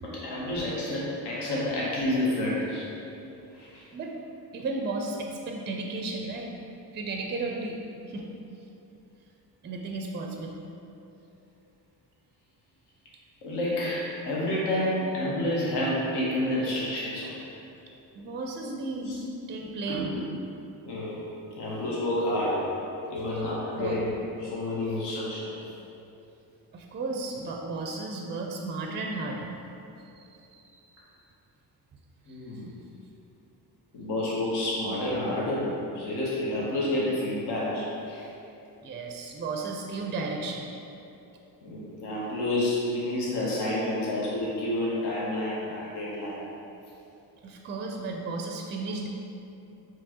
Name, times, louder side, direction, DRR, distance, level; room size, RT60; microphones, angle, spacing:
voice 1, 0.0-2.9 3.5-3.8 13.4-17.3 19.0-19.2 19.9-20.2 20.9-21.2 21.6-22.6 23.1-24.1 24.4-25.7 32.3-32.7 33.9-38.3 41.6-46.4, left 1 dB, 75° left, -6 dB, 0.9 m, -29 dB
voice 2, 4.5-6.5 6.9-7.8 8.1-8.3 9.6-10.6 18.1-19.1 19.5-20.2 23.4-23.5 23.8-24.0 26.7-29.5 30.2-31.0 32.3-32.7 38.8-40.7 47.4-49.1, right 3 dB, 30° right, 1 dB, 0.4 m, -34 dB
4.4 x 3.0 x 2.8 m, 2.8 s
cardioid pair, 65°, 41 cm